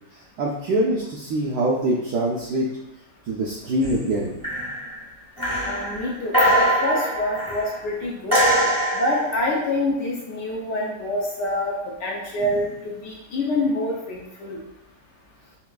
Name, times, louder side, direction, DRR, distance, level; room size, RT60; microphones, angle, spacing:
voice 1, 0.4-2.7 3.3-4.4, right 1 dB, 80° right, -3 dB, 0.9 m, -24 dB
sound 1, 3.8-4.2 4.4-5.0 5.4-7.8 8.3-9.4 12.4-12.6, equal, 25° right, 0.5 m, -23 dB
voice 2, 5.7-8.4 8.9-11.7 12.0-14.6, left 1 dB, 70° left, -3 dB, 1.0 m, -26 dB
5.7 x 2.4 x 2.3 m, 0.91 s
omnidirectional pair, 2.3 m